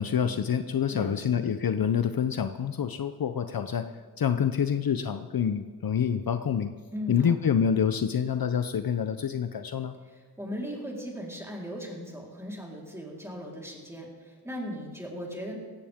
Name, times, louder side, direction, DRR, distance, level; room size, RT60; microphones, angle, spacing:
voice 1, 0.0-3.9 4.2-6.7 7.1-9.9, left 7 dB, 65° left, 9 dB, 0.6 m, -27 dB
voice 2, 0.9-1.4 6.9-7.3 10.0-15.6, equal, 5° right, -3 dB, 3.9 m, -38 dB
18.0 x 16.0 x 3.6 m, 1.5 s
wide cardioid pair, 65°, 38 cm